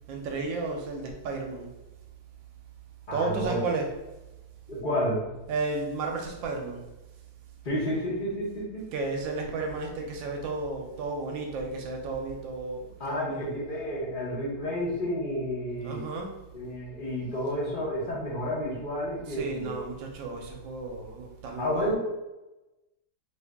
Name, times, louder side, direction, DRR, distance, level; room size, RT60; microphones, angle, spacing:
voice 1, 0.1-1.7 3.1-4.0 5.5-6.8 8.9-13.5 15.8-16.3 19.3-22.0, right 3 dB, 80° right, 2 dB, 1.3 m, -33 dB
voice 2, 3.1-3.6 4.7-5.2 7.6-8.8 13.0-16.0 16.5-19.8 21.6-22.0, equal, 35° left, -6 dB, 0.9 m, -30 dB
3.2 x 2.6 x 3.4 m, 1.0 s
omnidirectional pair, 2.1 m